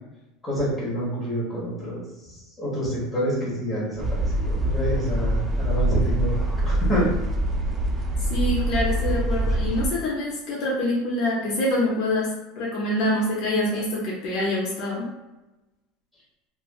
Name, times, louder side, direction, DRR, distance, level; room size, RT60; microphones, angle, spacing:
voice 1, 0.4-7.1, equal, 5° left, -8 dB, 1.0 m, -27 dB
sound 1, 4.0-9.9, right 1 dB, 15° right, 0.3 m, -24 dB
voice 2, 8.2-15.0, left 1 dB, 45° left, -4 dB, 0.6 m, -25 dB
3.1 x 2.4 x 2.3 m, 1.0 s
supercardioid pair, 170°, 0 cm